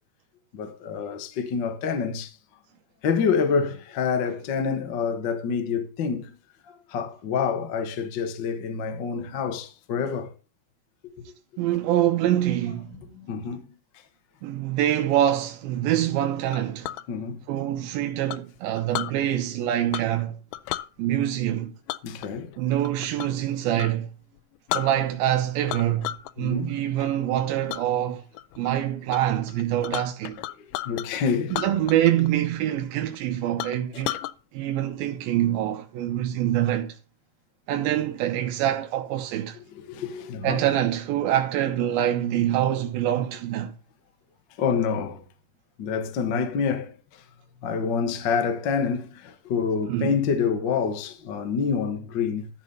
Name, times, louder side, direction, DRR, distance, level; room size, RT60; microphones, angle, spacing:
voice 1, 0.5-2.3 3.0-6.3 6.7-10.3 13.3-13.7 17.1-17.4 22.0-22.5 26.4-26.8 30.8-31.6 33.9-34.0 39.8-40.6 44.6-45.2 45.8-46.9 47.6-52.5, left 6 dB, 60° left, 1.1 m, -27 dB
voice 2, 11.6-13.0 14.4-16.9 17.5-20.3 21.0-21.7 22.6-24.1 24.7-28.2 28.6-30.4 31.5-34.2 34.5-37.0 37.7-39.6 40.4-43.7 49.9-50.2, right 12 dB, 90° right, 2.7 m, -25 dB
Chink clink, 16.5-17.1 18.3-19.1 19.9-20.2 20.5-20.9 21.9-23.4 23.7-23.9 24.4-24.5 24.7-25.3 25.7-26.3 26.7-27.1 27.7-27.8 28.3-28.7 29.1-29.2 29.5-31.1 31.5-32.3 32.5-32.6 33.1-33.2 33.6-34.3, left 15 dB, 80° left, 2.0 m, -33 dB
13.0 x 4.4 x 5.3 m
omnidirectional pair, 4.1 m